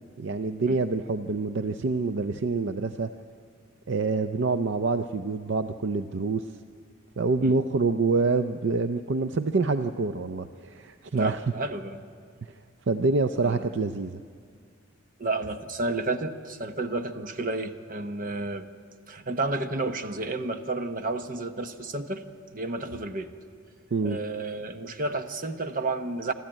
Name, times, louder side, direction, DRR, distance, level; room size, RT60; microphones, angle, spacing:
voice 1, 0.2-3.1 3.9-6.4 7.2-11.4 12.9-14.2 23.9-24.2, right 3 dB, 60° right, 9 dB, 0.5 m, -26 dB
voice 2, 11.1-12.0 13.4-13.7 15.2-18.7 19.1-22.2 22.5-23.3 24.0-26.3, right 2 dB, 45° right, 8 dB, 1.0 m, -31 dB
26.0 x 13.5 x 8.9 m, 2.1 s
head